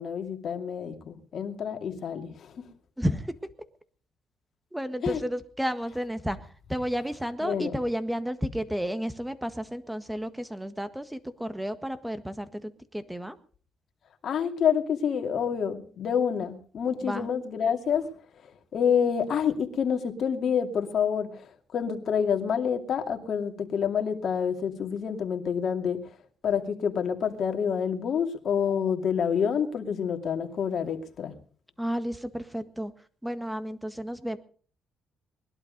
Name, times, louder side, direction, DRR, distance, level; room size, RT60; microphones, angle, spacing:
voice 1, 0.0-2.7 5.0-5.2 7.4-7.7 14.2-18.1 18.7-26.1 26.4-31.3, left 7 dB, 60° left, 4 dB, 2.5 m, -28 dB
voice 2, 3.0-3.3 4.7-13.4 17.0-17.3 31.8-32.9 33.2-34.4, equal, 5° right, 11 dB, 1.7 m, -32 dB
21.0 x 12.0 x 5.3 m, 0.43 s
cardioid pair, 90°, 0 cm